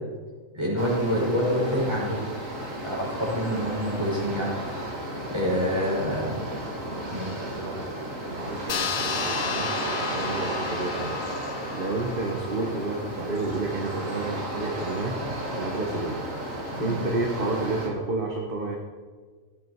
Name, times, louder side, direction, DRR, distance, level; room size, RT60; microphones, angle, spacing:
voice 1, 0.5-2.3 2.8-4.5 5.3-6.4 7.1-7.3 16.8-17.0, equal, 20° right, -5 dB, 5.4 m, -26 dB
sound 1, 0.8-17.9, right 1 dB, 70° right, 2.8 m, -33 dB
voice 2, 7.5-7.9 8.3-9.7 10.1-11.2 11.7-15.2 15.5-16.2 16.8-18.8, right 2 dB, 40° right, 1 dB, 1.4 m, -30 dB
sound 2, 8.7-13.6, left 6 dB, 55° left, 0.9 m, -34 dB
16.5 x 11.5 x 4.7 m, 1.5 s
omnidirectional pair, 1.4 m